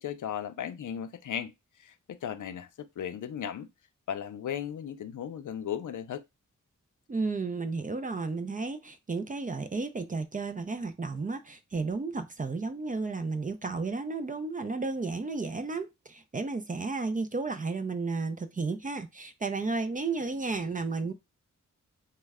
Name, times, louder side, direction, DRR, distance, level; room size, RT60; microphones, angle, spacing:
voice 1, 0.0-1.5 1.8-3.7 4.1-6.2, left 9 dB, 70° left, 0.5 m, -36 dB
voice 2, 7.1-21.1, right 3 dB, 25° right, 0.3 m, -33 dB
3.1 x 2.1 x 3.4 m
wide cardioid pair, 100°, 31 cm